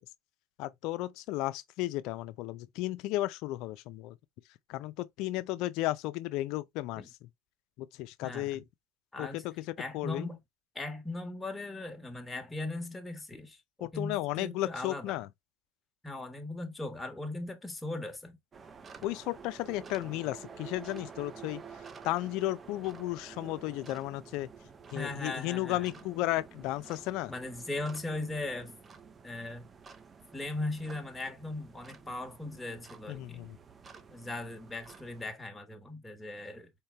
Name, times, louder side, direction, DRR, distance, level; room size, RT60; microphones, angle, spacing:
voice 1, 0.6-4.1 4.7-7.0 7.8-8.6 9.2-10.3 13.8-15.3 19.0-21.6 22.0-24.5 24.9-27.3 33.1-33.6, left 16 dB, 65° left, 0.5 m, -34 dB
voice 2, 8.2-8.6 9.1-9.4 9.8-10.4 10.7-15.2 16.0-18.4 24.9-26.0 27.3-28.8 29.2-29.7 30.3-33.5 34.1-36.7, left 2 dB, 10° left, 1.3 m, -38 dB
sound 1, 18.5-35.3, right 6 dB, 25° right, 0.7 m, -50 dB
4.3 x 3.6 x 3.3 m
supercardioid pair, 100°, 0 cm